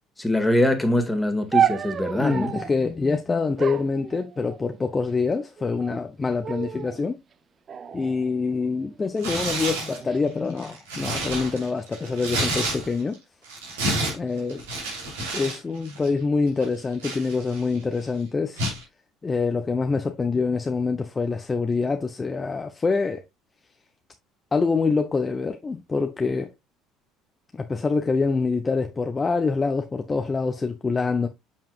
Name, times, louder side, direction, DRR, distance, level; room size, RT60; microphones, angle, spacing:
voice 1, 0.2-2.5, left 1 dB, 5° left, 1.8 m, -23 dB
sound 1, 1.5-2.8 3.6-4.8 5.6-6.1 6.4-7.0 7.7-9.0 9.7-10.2, right 8 dB, 40° right, 0.6 m, -29 dB
voice 2, 2.1-7.2 7.9-13.2 14.1-14.6 15.3-18.7 19.2-23.2 24.5-26.5 27.5-31.3, left 4 dB, 25° left, 0.7 m, -25 dB
Tearing, 9.2-10.0 10.5-13.1 13.4-15.6 15.9-16.1 16.6-17.8 18.6-18.8, right 1 dB, 80° right, 3.2 m, -29 dB
7.6 x 5.4 x 2.4 m
hypercardioid pair, 65°, 0 cm